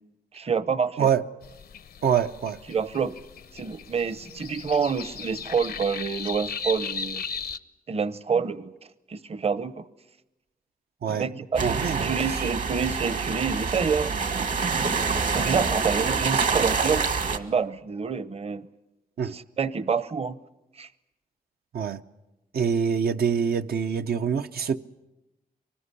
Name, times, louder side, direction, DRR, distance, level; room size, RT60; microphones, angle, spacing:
voice 1, 0.3-1.1 2.7-3.2 3.5-7.2 7.9-8.7 9.1-9.8 11.1-14.5 15.3-18.7 19.3-20.4 20.8-20.9, right 6 dB, 40° right, 0.8 m, -28 dB
sound 1, 1.4-7.6, left 5 dB, 85° left, 0.8 m, -37 dB
voice 2, 2.0-2.6 11.0-11.3 11.6-12.4 19.2-19.4 21.7-22.0 22.5-24.8, right 7 dB, 85° right, 0.8 m, -25 dB
sound 2, 11.6-17.4, right 5 dB, 60° right, 1.7 m, -26 dB
24.0 x 20.0 x 9.8 m
wide cardioid pair, 115°, 16 cm